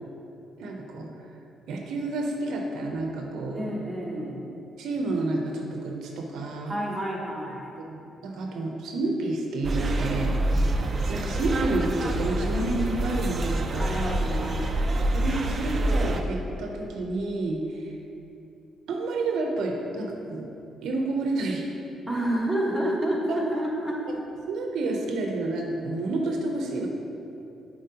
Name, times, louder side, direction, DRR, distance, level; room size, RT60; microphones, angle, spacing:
voice 1, 0.6-1.1 1.7-3.7 4.8-6.7 7.9-10.3 11.1-13.9 15.1-17.9 18.9-20.5 20.8-21.7 23.3-23.4 24.5-26.9, right 2 dB, 80° right, 1 dB, 0.7 m, -29 dB
voice 2, 3.5-4.4 6.7-7.7 13.8-14.8 22.1-24.0, right 1 dB, ahead, -6 dB, 1.4 m, -29 dB
sound 1, 9.6-16.2, right 1 dB, 40° right, 0.4 m, -26 dB
7.4 x 4.5 x 2.8 m, 2.7 s
cardioid pair, 90°, 0 cm